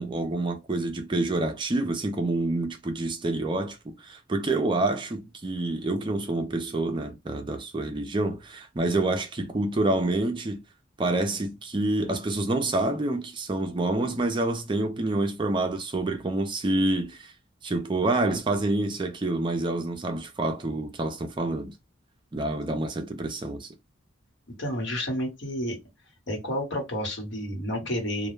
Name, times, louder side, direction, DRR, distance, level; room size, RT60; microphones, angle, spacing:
voice 1, 0.0-10.6 11.0-17.3 17.6-21.7 22.3-23.7, right 2 dB, 25° right, 0.4 m, -27 dB
voice 2, 24.6-25.8 26.3-28.3, equal, 65° left, 1.1 m, -30 dB
2.2 x 2.1 x 3.0 m
head